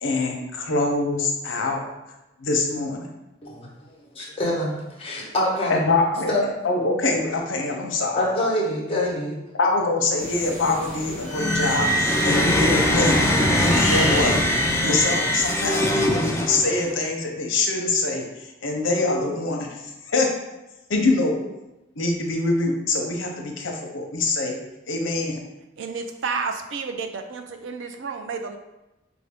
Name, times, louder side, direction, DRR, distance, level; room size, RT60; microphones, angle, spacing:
voice 1, 0.0-1.8 2.4-3.0 5.7-6.3 6.6-8.2 9.6-14.3 14.8-18.3 18.6-19.7 20.1-20.3 20.9-21.4 22.0-24.6 24.9-25.4, left 3 dB, 80° left, 2 dB, 0.7 m, -24 dB
voice 2, 4.1-5.8 6.3-6.4 8.1-9.4, left 1 dB, 30° left, -3 dB, 0.9 m, -25 dB
sound 1, 10.2-15.9, right 1 dB, 45° right, 1.1 m, -36 dB
sound 2, 11.3-16.9, left 1 dB, 15° left, 0.4 m, -21 dB
voice 3, 25.8-28.6, right 5 dB, 70° right, 6 dB, 0.4 m, -31 dB
4.7 x 2.6 x 3.4 m, 0.98 s
head